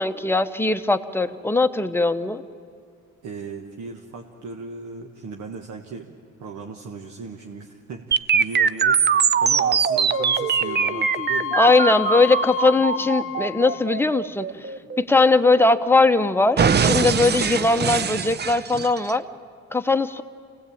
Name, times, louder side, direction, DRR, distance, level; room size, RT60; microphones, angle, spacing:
voice 1, 0.0-2.4 11.5-14.5 15.0-19.2 19.7-20.2, left 3 dB, 10° left, 8 dB, 0.9 m, -20 dB
voice 2, 3.2-11.6, right 4 dB, 70° right, 2 dB, 1.5 m, -37 dB
sound 1, 8.1-16.1 16.6-19.1, right 6 dB, 35° right, 0.6 m, -22 dB
Wind instrument woodwind instrument, 10.1-14.0, left 12 dB, 45° left, 0.7 m, -31 dB
26.0 x 17.5 x 8.6 m, 2.2 s
cardioid pair, 90°, 30 cm